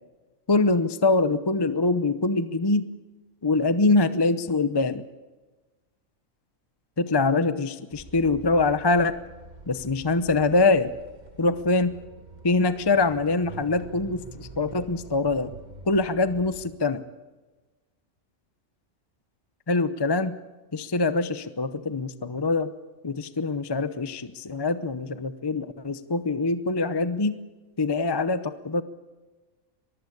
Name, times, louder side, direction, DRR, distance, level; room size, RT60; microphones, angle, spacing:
voice 1, 0.5-2.9 3.4-5.0 7.0-9.2 9.7-10.9 11.4-11.9 12.4-15.5 15.9-17.0 19.7-20.4 20.7-22.7 23.0-27.4 27.8-28.8, left 3 dB, 25° left, 12 dB, 0.6 m, -24 dB
sound 1, 7.9-16.7, right 2 dB, 35° right, 1.5 m, -45 dB
23.0 x 14.5 x 8.6 m, 1.2 s
omnidirectional pair, 1.4 m